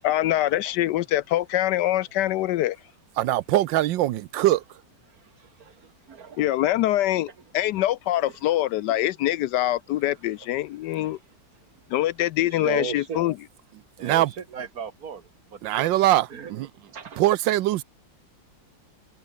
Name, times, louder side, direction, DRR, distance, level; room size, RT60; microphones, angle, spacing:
voice 1, 0.0-2.8 6.4-11.2 11.9-13.3, left 14 dB, 75° left, 1.1 m, -24 dB
voice 2, 3.2-4.6 14.0-14.3 15.6-16.7 17.2-17.8, right 14 dB, 80° right, 1.4 m, -22 dB
voice 3, 5.1-6.5 10.9-11.2 12.5-13.2 14.0-15.9 16.3-16.5 16.8-17.2, right 6 dB, 55° right, 1.9 m, -37 dB
omnidirectional pair, 2.0 m